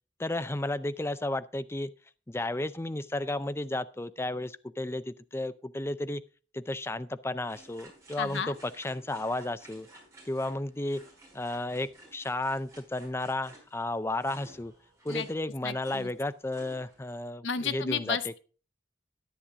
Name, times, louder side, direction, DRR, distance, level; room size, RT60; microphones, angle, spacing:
voice 1, 0.2-1.9 2.3-6.2 6.5-9.9 10.3-11.0 11.3-14.7 15.0-18.3, left 2 dB, 15° left, 13 dB, 0.5 m, -33 dB
sound 1, 7.4-17.2, right 2 dB, 15° right, 4.6 m, -54 dB
voice 2, 8.2-8.5 15.1-15.3 15.6-16.1 17.4-18.4, left 6 dB, 90° left, 12 dB, 0.9 m, -32 dB
10.0 x 9.8 x 3.6 m, 0.35 s
head